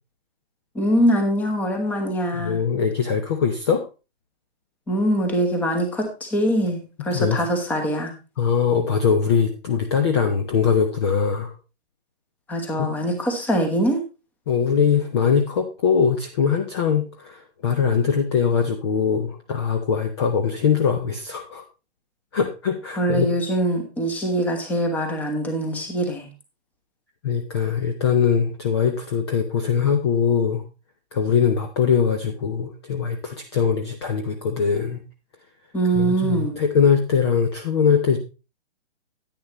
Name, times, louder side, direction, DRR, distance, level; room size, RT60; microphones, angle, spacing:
voice 1, 0.7-2.6 4.9-8.1 12.5-14.0 23.0-26.3 35.7-36.6, right 1 dB, 5° left, 4 dB, 1.0 m, -23 dB
voice 2, 2.4-3.8 7.1-7.4 8.4-11.5 12.8-12.9 14.5-21.6 22.3-23.3 27.2-30.6 31.1-35.0 35.9-38.2, left 6 dB, 25° left, 5 dB, 0.6 m, -21 dB
10.0 x 9.7 x 3.0 m, 0.30 s
hypercardioid pair, 160°, 33 cm